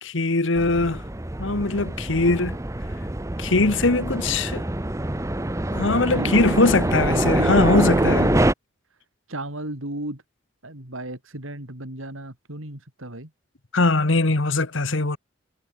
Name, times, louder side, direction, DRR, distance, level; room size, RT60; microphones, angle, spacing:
voice 1, 0.0-1.0 1.4-2.6 3.4-4.6 5.7-8.3 13.7-15.2, left 2 dB, 65° left, 1.4 m, -21 dB
sound 1, 0.5-8.5, right 1 dB, 15° right, 0.8 m, -25 dB
voice 2, 6.1-7.6 8.0-8.5 9.3-10.2 10.6-13.3, right 1 dB, 75° right, 4.7 m, -34 dB
head